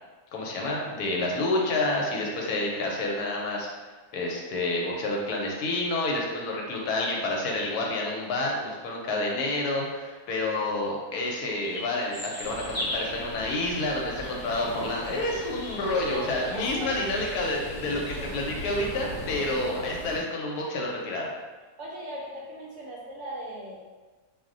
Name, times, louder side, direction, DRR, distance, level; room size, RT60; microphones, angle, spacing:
voice 1, 0.3-3.7 4.1-21.3, left 2 dB, 90° left, -1 dB, 1.1 m, -29 dB
sound 1, 11.6-18.2, left 1 dB, 25° left, 0.4 m, -40 dB
sound 2, 12.4-20.2, left 1 dB, 55° left, 1.0 m, -40 dB
voice 2, 15.9-17.2 18.2-18.3 21.8-23.8, right 1 dB, 65° right, -4 dB, 0.8 m, -38 dB
2.6 x 2.1 x 3.7 m, 1.3 s
omnidirectional pair, 1.6 m